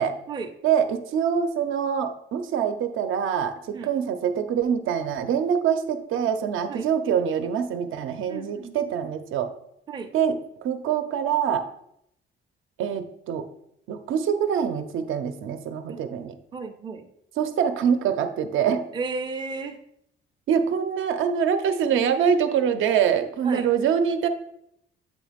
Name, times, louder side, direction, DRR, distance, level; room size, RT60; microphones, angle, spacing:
voice 1, 0.6-9.5 10.1-10.3 10.6-11.6 12.8-13.4 13.9-16.4 17.4-18.9 20.5-24.3, right 7 dB, 75° right, 8 dB, 0.6 m, -24 dB
voice 2, 8.3-8.7 9.9-10.1 15.9-16.0 16.5-17.1 18.9-19.8 23.4-23.7, right 4 dB, 20° right, 4 dB, 0.4 m, -33 dB
8.1 x 3.1 x 5.0 m, 0.76 s
cardioid pair, 175°, 21 cm